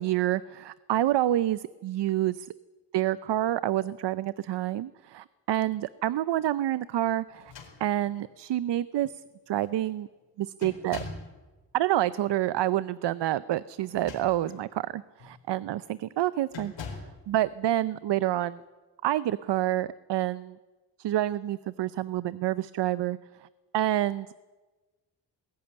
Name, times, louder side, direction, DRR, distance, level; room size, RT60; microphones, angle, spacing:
voice 1, 0.0-2.5 2.9-7.5 7.8-9.1 9.5-10.1 10.4-11.0 11.7-16.7 17.3-18.6 19.0-20.6 21.0-23.2 23.7-24.3, right 13 dB, 70° right, 17 dB, 0.6 m, -28 dB
sound 1, 7.3-8.3 9.1-9.2 9.6-9.9 10.6-11.4 13.8-14.6 15.2-15.4 16.5-17.2, left 4 dB, 80° left, 4.5 m, -42 dB
20.0 x 14.0 x 9.7 m, 1.3 s
wide cardioid pair, 155°, 43 cm